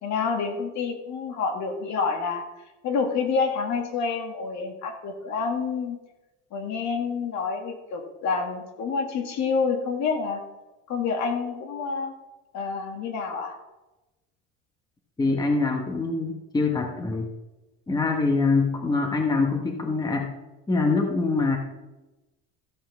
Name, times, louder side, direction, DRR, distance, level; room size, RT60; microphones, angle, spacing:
voice 1, 0.0-2.4 2.8-6.0 6.5-10.4 10.9-12.1 12.5-13.6, left 5 dB, 55° left, 4 dB, 2.1 m, -28 dB
voice 2, 15.2-17.3 17.9-20.3 20.7-21.6, left 3 dB, 10° left, 3 dB, 1.1 m, -24 dB
14.0 x 6.1 x 5.9 m, 1.1 s
cardioid pair, 135°, 33 cm